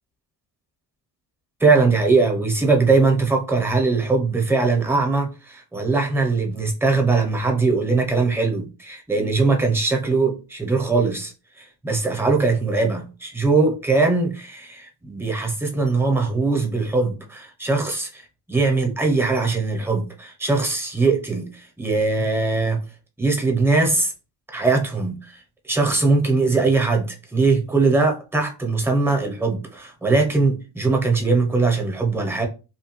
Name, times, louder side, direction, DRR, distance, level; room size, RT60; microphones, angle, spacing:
voice 1, 1.6-11.3 11.6-18.2 18.5-22.8 23.2-24.1 24.5-25.4 25.6-32.5, right 3 dB, 5° right, 0.5 m, -21 dB
2.7 x 2.2 x 2.9 m
cardioid pair, 105°, 49 cm